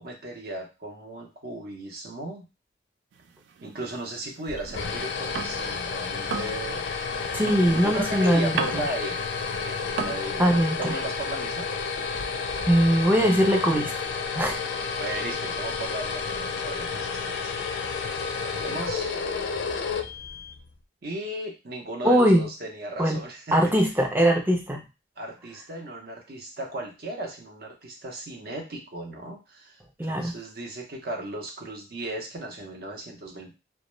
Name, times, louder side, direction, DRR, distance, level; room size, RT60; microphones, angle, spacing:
voice 1, 0.0-2.4 3.6-7.1 7.8-9.2 9.6-11.7 15.0-17.5 18.4-19.1 21.0-23.6 25.2-33.5, right 1 dB, 55° right, 1 dB, 0.7 m, -36 dB
sound 1, 3.1-5.8 6.1-10.2, right 6 dB, 80° right, 0.3 m, -35 dB
sound 2, 4.5-20.7, left 5 dB, 70° left, 0.4 m, -31 dB
voice 2, 7.3-8.8 10.4-10.9 12.7-13.9 14.4-14.6 22.0-22.4 23.0-23.2 23.5-24.8 30.0-30.3, equal, 10° right, 2 dB, 0.4 m, -21 dB
2.2 x 2.0 x 3.0 m, 0.28 s
head